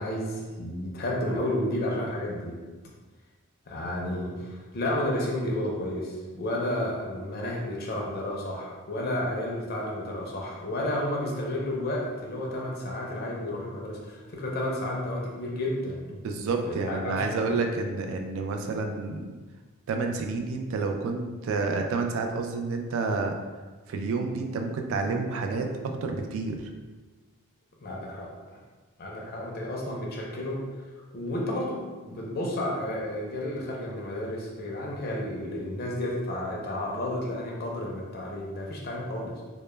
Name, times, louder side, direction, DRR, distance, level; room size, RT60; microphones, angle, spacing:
voice 1, 0.0-2.6 3.7-16.0 16.6-17.5 27.8-28.6 29.0-30.6 31.1-39.4, left 1 dB, 45° left, -2 dB, 0.5 m, -31 dB
voice 2, 16.2-19.3 19.9-23.4 23.9-26.7, right 3 dB, 65° right, 4 dB, 0.3 m, -29 dB
2.1 x 2.0 x 3.0 m, 1.3 s
head